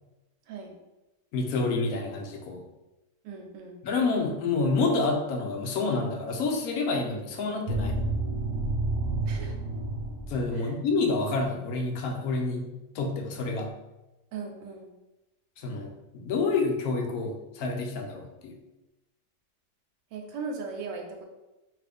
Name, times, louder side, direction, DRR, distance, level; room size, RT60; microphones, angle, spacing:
voice 1, 0.5-0.8 3.2-3.8 9.3-9.6 10.5-10.7 14.3-14.9 20.1-21.3, right 4 dB, 90° right, 1 dB, 1.2 m, -38 dB
voice 2, 1.3-2.6 3.8-8.0 10.3-12.7 12.9-13.7 15.6-18.5, left 3 dB, 70° left, 2 dB, 1.0 m, -28 dB
sound 1, 7.7-10.5, right 2 dB, 70° right, 1.2 m, -29 dB
2.9 x 2.5 x 3.3 m, 1.0 s
omnidirectional pair, 1.8 m